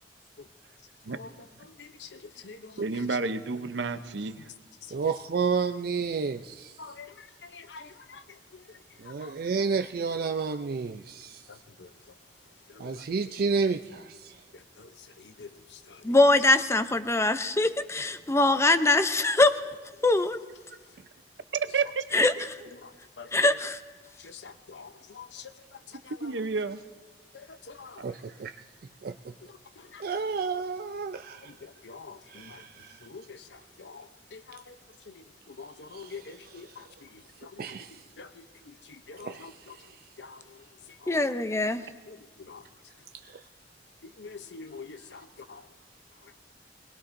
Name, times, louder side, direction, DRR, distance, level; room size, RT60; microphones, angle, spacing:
voice 1, 1.1-3.2 4.4-4.5 4.8-5.0 6.8-9.3 11.5-12.2 12.7-13.1 14.5-16.2 16.9-17.0 18.2-18.4 20.0-20.1 20.7-21.0 22.7-23.6 24.0-26.5 27.3-28.2 29.4-30.1 31.4-34.8 35.0-39.9 40.2-41.5 42.1-42.2 42.5-42.6 44.0-45.7 46.1-46.4, left 4 dB, 85° left, 0.7 m, -48 dB
voice 2, 2.8-4.5 21.5-22.0 22.4-22.5 26.2-26.8, right 4 dB, 85° right, 0.7 m, -30 dB
voice 3, 4.9-6.7 9.0-11.4 12.8-14.4 28.0-28.5 29.0-29.3 30.0-31.5 32.3-33.0 35.9-36.1 37.6-38.0 39.2-39.6 43.2-43.4, right 5 dB, 55° right, 0.4 m, -31 dB
voice 4, 16.0-19.6 20.0-20.4 22.1-22.3 23.3-23.8 41.1-41.8, left 2 dB, 15° left, 0.5 m, -22 dB
21.0 x 20.0 x 2.6 m
head